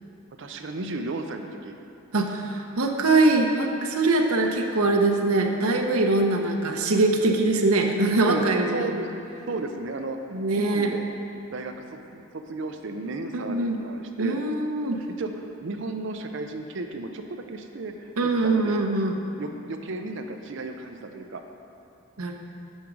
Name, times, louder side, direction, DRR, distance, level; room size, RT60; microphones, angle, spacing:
voice 1, 0.4-1.8 8.3-9.1 9.5-10.2 10.5-11.0 11.5-14.4 15.2-18.8 19.4-21.4, right 2 dB, 55° right, 6 dB, 0.5 m, -34 dB
voice 2, 2.1-8.9 10.3-11.0 13.3-13.8 14.2-15.0 18.2-19.1 22.2-22.3, right 2 dB, 80° right, 2 dB, 0.8 m, -23 dB
9.0 x 5.1 x 6.1 m, 2.6 s
head